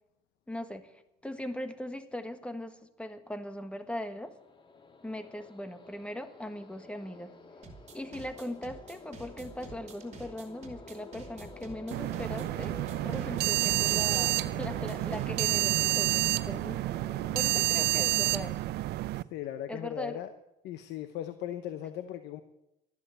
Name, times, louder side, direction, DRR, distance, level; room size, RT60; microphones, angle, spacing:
voice 1, 0.5-0.9 1.2-4.3 5.0-7.3 7.9-12.8 13.0-17.0 17.3-18.6 19.7-20.2, left 1 dB, 5° left, 9 dB, 1.5 m, -39 dB
sound 1, 4.1-17.5, left 4 dB, 30° left, 1.9 m, -50 dB
sound 2, 7.6-15.6, right 4 dB, 40° right, 4.0 m, -48 dB
sound 3, 11.9-19.2, right 18 dB, 75° right, 0.5 m, -29 dB
voice 2, 19.3-20.3 20.6-22.4, left 11 dB, 85° left, 10 dB, 0.9 m, -38 dB
13.5 x 11.0 x 7.9 m, 0.89 s
cardioid pair, 110°, 17 cm